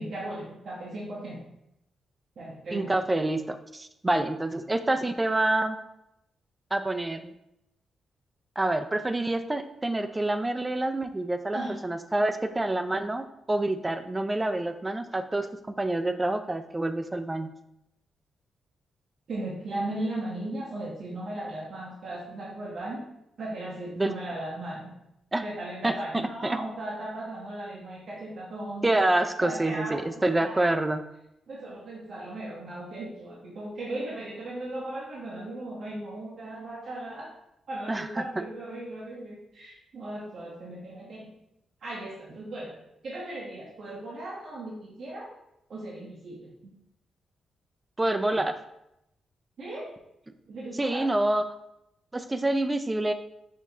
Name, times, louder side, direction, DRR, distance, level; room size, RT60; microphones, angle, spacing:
voice 1, 0.0-1.5 2.4-3.0 11.5-11.7 19.3-23.0 23.4-24.9 25.4-29.1 29.4-30.7 31.5-37.3 37.7-41.3 41.8-42.7 43.0-45.3 45.7-46.8 49.6-49.9 50.5-51.1, right 1 dB, 60° right, -5 dB, 1.0 m, -37 dB
voice 2, 2.7-5.8 6.7-7.2 8.6-15.5 15.8-17.5 24.0-24.1 25.3-25.4 25.8-25.9 26.4-26.6 28.8-31.0 37.9-38.4 48.0-48.6 50.8-51.4 52.1-53.1, right 2 dB, 15° right, 9 dB, 0.3 m, -27 dB
6.2 x 2.9 x 2.7 m, 0.83 s
cardioid pair, 110°, 0 cm